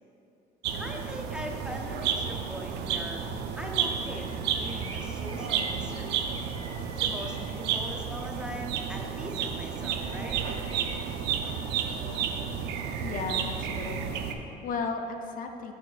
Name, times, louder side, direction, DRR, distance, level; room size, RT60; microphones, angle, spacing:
sound 1, 0.6-14.3, right 7 dB, 80° right, 0.5 m, -32 dB
voice 1, 0.7-3.2 3.6-6.2 7.0-10.4, equal, 5° right, 0 dB, 0.6 m, -40 dB
sound 2, 1.5-2.6 2.9-3.0 3.4-3.7 4.0-7.8 9.0-9.1 9.8-11.0, right 2 dB, 35° right, 0.9 m, -48 dB
voice 2, 13.0-15.7, left 4 dB, 55° left, 5 dB, 0.5 m, -35 dB
6.7 x 6.3 x 2.4 m, 2.7 s
cardioid pair, 110°, 17 cm